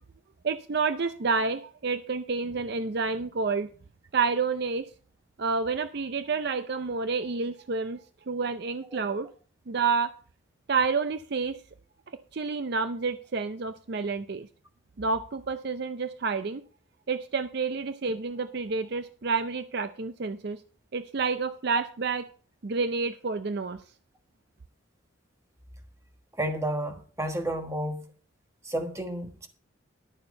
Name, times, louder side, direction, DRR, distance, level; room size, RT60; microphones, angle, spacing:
voice 1, 0.4-3.7 4.1-4.8 5.4-8.0 8.3-9.3 9.7-10.1 10.7-11.6 12.3-14.5 15.0-16.6 17.1-20.6 20.9-22.3 22.6-23.8, right 4 dB, 50° right, 0.5 m, -29 dB
voice 2, 26.4-28.1 28.6-29.5, right 1 dB, 15° right, 1.4 m, -31 dB
11.5 x 7.0 x 5.2 m
head